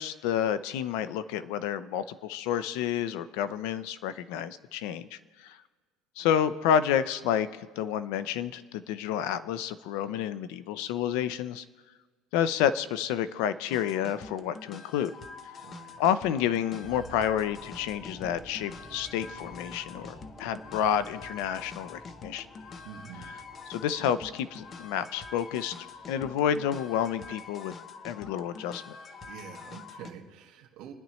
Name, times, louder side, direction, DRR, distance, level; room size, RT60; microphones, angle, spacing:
voice 1, 0.0-5.6 6.2-11.6 12.3-15.1 16.0-22.5 23.7-27.7 28.0-29.0, left 9 dB, 60° left, 13 dB, 0.6 m, -29 dB
sound 1, 13.7-30.1, left 5 dB, 20° left, 0.6 m, -46 dB
voice 2, 15.6-16.0 22.8-23.3 29.2-30.9, right 8 dB, 50° right, -1 dB, 1.8 m, -46 dB
sound 2, 16.8-26.8 27.1-27.3, right 2 dB, ahead, 2.0 m, -53 dB
29.0 x 10.0 x 3.1 m, 1.4 s
cardioid pair, 175°, 0 cm